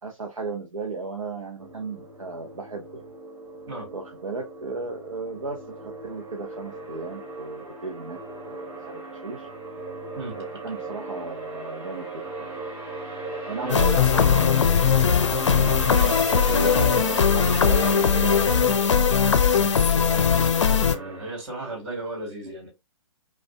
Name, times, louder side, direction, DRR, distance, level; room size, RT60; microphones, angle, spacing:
voice 1, 0.0-3.0 3.9-8.2 8.4-9.5 10.3-12.1 12.3-12.5 13.4-14.9 16.0-18.7 19.0-19.1, right 3 dB, 70° right, 0.8 m, -35 dB
sound 1, 1.6-21.3, right 3 dB, 15° right, 0.9 m, -36 dB
voice 2, 13.6-14.7 15.0-15.1 19.5-19.7 20.6-22.7, right 1 dB, 45° right, 2.3 m, -35 dB
sound 2, 13.7-20.9, left 7 dB, 60° left, 0.5 m, -20 dB
4.8 x 2.4 x 2.3 m
figure-of-eight pair, 125°, 17 cm